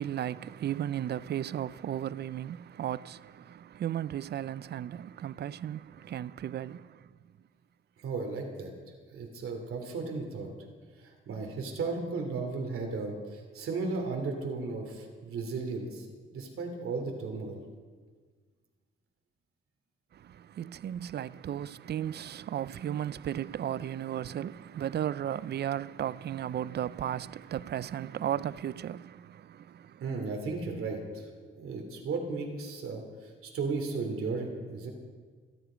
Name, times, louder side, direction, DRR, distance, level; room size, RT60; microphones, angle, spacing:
voice 1, 0.0-7.1 20.1-30.0, right 10 dB, 50° right, 0.4 m, -35 dB
voice 2, 8.0-8.7 9.1-10.5 11.0-17.6 30.0-31.3 31.5-34.9, right 4 dB, 85° right, 2.9 m, -35 dB
28.0 x 10.0 x 5.1 m
wide cardioid pair, 145°, 21 cm